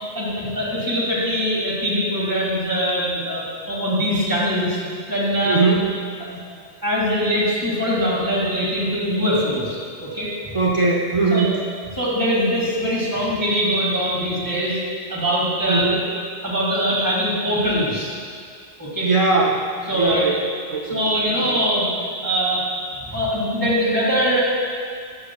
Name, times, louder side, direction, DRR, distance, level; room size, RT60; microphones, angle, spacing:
voice 1, 0.2-4.8 5.1-5.6 6.8-10.5 11.3-11.5 12.0-14.8 15.1-15.9 16.4-18.1 18.8-19.1 19.9-20.2 20.8-21.9 22.2-22.6 23.1-24.4, equal, 20° right, -6 dB, 2.0 m, -22 dB
voice 2, 5.4-5.9 10.5-11.6 15.7-16.1 19.0-20.4 20.7-21.6, right 3 dB, 35° right, -2 dB, 0.5 m, -20 dB
11.5 x 7.3 x 2.3 m, 2.1 s
omnidirectional pair, 1.1 m